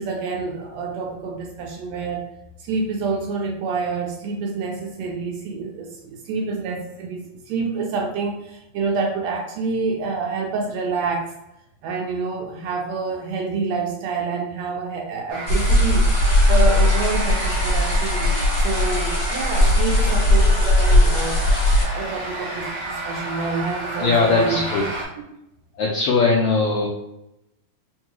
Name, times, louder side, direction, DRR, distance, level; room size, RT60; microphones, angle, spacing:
voice 1, 0.0-2.2 2.6-11.3 11.8-16.1 16.5-18.3 18.6-21.4 21.8-24.8, right 4 dB, 80° right, 1 dB, 1.6 m, -27 dB
sound 1, 15.3-25.0, right 2 dB, 65° right, 2.0 m, -30 dB
sound 2, 15.5-21.8, left 1 dB, 65° left, 1.1 m, -18 dB
voice 2, 24.0-24.9 25.7-26.9, left 4 dB, 85° left, -2 dB, 1.3 m, -19 dB
4.5 x 2.3 x 3.0 m, 0.85 s
omnidirectional pair, 3.3 m